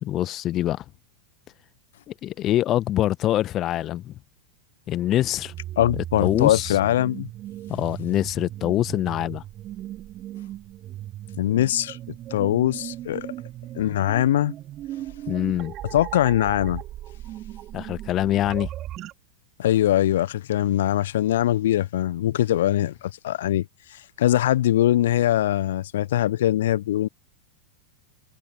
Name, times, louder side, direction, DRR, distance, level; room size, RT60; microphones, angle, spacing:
voice 1, 0.0-0.8 2.1-4.1 4.9-5.5 6.0-6.8 7.7-9.4 15.3-15.7 17.7-18.7, left 13 dB, 30° left, 1.4 m, -24 dB
sound 1, 5.4-19.1, right 13 dB, 35° right, 4.5 m, -37 dB
voice 2, 5.8-7.3 11.4-12.0 12.3-13.3 13.7-14.5 15.9-16.8 19.6-23.6 23.9-27.1, left 13 dB, 60° left, 1.1 m, -22 dB
figure-of-eight pair, 90°, 0 cm